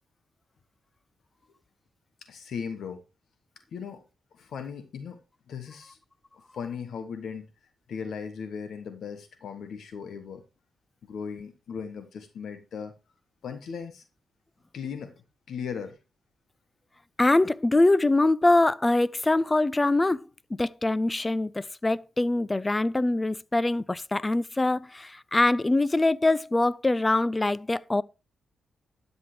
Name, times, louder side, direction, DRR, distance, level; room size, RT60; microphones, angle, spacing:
voice 1, 2.3-3.0 3.7-4.0 4.3-5.2 5.5-6.0 6.5-7.5 7.9-10.4 11.1-12.9 13.4-14.0 14.7-15.1 15.5-16.0, left 6 dB, 70° left, 1.2 m, -37 dB
voice 2, 17.2-28.0, left 2 dB, 25° left, 0.5 m, -24 dB
12.5 x 8.2 x 3.2 m
supercardioid pair, 50°, 0 cm